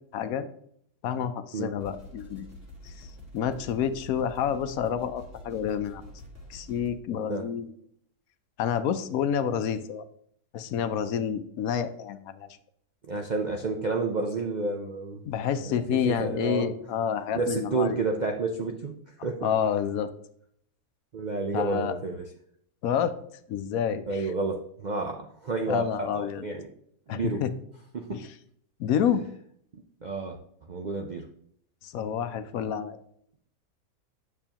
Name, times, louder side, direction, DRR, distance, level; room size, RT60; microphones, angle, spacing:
voice 1, 0.1-0.5 1.0-2.5 2.8-3.1 3.3-6.0 6.5-7.7 8.6-10.0 10.5-12.5 15.2-18.0 19.4-20.1 21.5-21.9 22.8-23.1 23.5-24.3 25.7-26.4 27.1-27.5 28.1-28.3 28.8-29.2 31.8-33.0, left 8 dB, 75° left, 11 dB, 1.0 m, -28 dB
sound 1, 1.8-6.9, left 1 dB, 10° right, 2.0 m, -47 dB
voice 2, 13.1-15.3 15.9-16.7 17.4-18.9 19.2-19.5 21.1-22.3 24.1-26.7 27.1-27.4 27.9-28.2 29.7-30.4 30.7-31.3, right 3 dB, 55° right, 2 dB, 0.5 m, -30 dB
9.0 x 7.1 x 2.9 m, 0.67 s
omnidirectional pair, 1.6 m